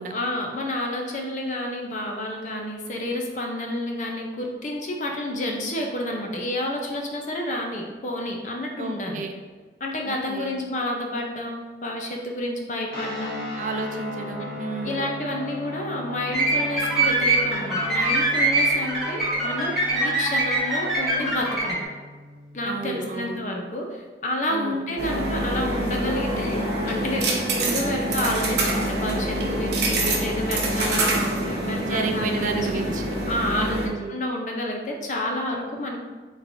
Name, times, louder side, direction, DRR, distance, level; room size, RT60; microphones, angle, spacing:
voice 1, 0.1-9.2 9.8-13.5 14.8-21.8 22.5-32.7 33.3-36.0, left 1 dB, 45° left, 1 dB, 0.5 m, -30 dB
voice 2, 8.8-9.4 10.1-10.5 13.6-15.1 22.6-23.4 24.5-24.9 27.4-27.7 31.8-33.1 33.6-34.1, right 4 dB, 45° right, 4 dB, 0.3 m, -32 dB
sound 1, 12.9-23.2, left 2 dB, 75° left, 1.0 m, -38 dB
sound 2, 16.3-21.8, right 2 dB, ahead, 1.0 m, -23 dB
sound 3, 25.0-33.9, right 1 dB, 70° right, 0.7 m, -26 dB
4.1 x 3.1 x 2.6 m, 1.4 s
head